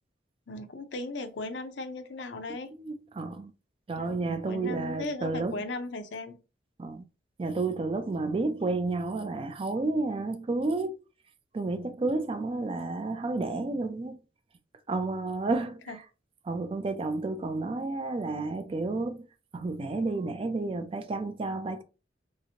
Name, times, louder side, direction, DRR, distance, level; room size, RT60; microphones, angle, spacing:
voice 1, 0.5-2.7 4.0-6.4 15.9-16.0, left 2 dB, 70° left, 0.5 m, -37 dB
voice 2, 2.8-3.5 3.9-5.6 6.8-7.0 7.4-11.0 11.5-14.2 14.9-16.0 16.4-19.3 19.5-21.8, right 3 dB, 30° right, 0.3 m, -31 dB
3.2 x 2.8 x 2.8 m
head